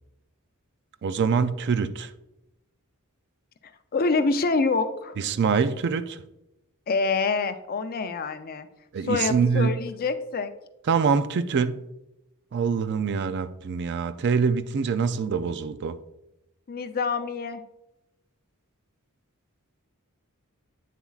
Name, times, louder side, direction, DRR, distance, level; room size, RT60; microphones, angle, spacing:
voice 1, 1.0-2.1 5.2-6.2 8.9-9.7 10.9-11.8 12.5-16.0, right 5 dB, 50° right, 0.4 m, -24 dB
voice 2, 3.9-5.1 6.9-8.7 9.0-10.5 16.7-17.6, left 4 dB, 40° left, 0.5 m, -26 dB
8.4 x 7.1 x 2.4 m
head